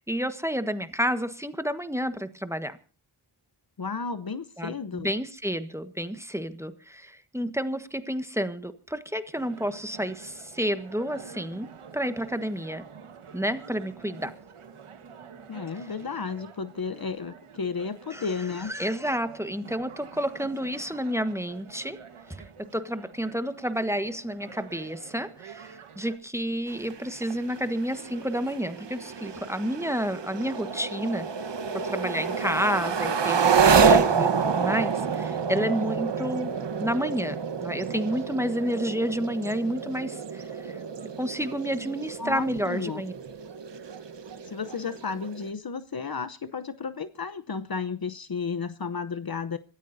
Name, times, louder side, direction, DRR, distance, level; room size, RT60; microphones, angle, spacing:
voice 1, 0.0-2.8 4.6-11.7 11.9-12.8 13.3-14.3 18.1-18.3 18.6-22.0 22.7-31.3 31.8-36.5 36.8-37.4 37.6-40.8 41.2-43.1, equal, 5° right, 1.4 m, -30 dB
voice 2, 3.8-5.1 15.5-18.7 42.2-43.0 44.5-49.6, left 5 dB, 45° left, 0.9 m, -33 dB
sound 1, 9.3-26.2, right 6 dB, 90° right, 1.6 m, -47 dB
sound 2, 26.7-45.5, right 5 dB, 60° right, 1.3 m, -28 dB
26.0 x 14.5 x 2.7 m
wide cardioid pair, 70°, 49 cm